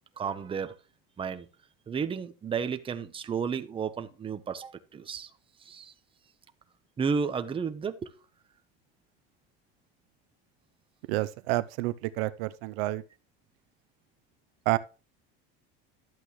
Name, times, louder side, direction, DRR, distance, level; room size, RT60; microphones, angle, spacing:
voice 1, 0.2-0.7 1.2-1.5 1.9-5.3 5.7-5.9 7.0-8.1, right 6 dB, 20° right, 0.9 m, -32 dB
voice 2, 11.1-13.0 14.7-14.8, right 18 dB, 75° right, 0.7 m, -29 dB
12.0 x 8.1 x 3.1 m
supercardioid pair, 140°, 30 cm